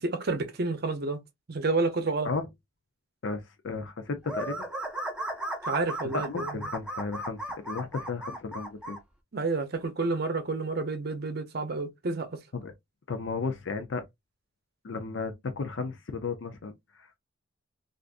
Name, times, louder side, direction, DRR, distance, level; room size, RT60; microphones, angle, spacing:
voice 1, 0.0-1.2 1.5-2.3 5.7-6.7 9.3-12.4, right 3 dB, 50° right, 0.6 m, -30 dB
voice 2, 3.2-4.7 6.0-9.0 12.5-12.7 13.1-14.0 14.8-17.2, left 4 dB, 60° left, 0.5 m, -34 dB
sound 1, 4.2-9.0, right 1 dB, 5° right, 0.5 m, -35 dB
3.5 x 2.5 x 2.4 m
head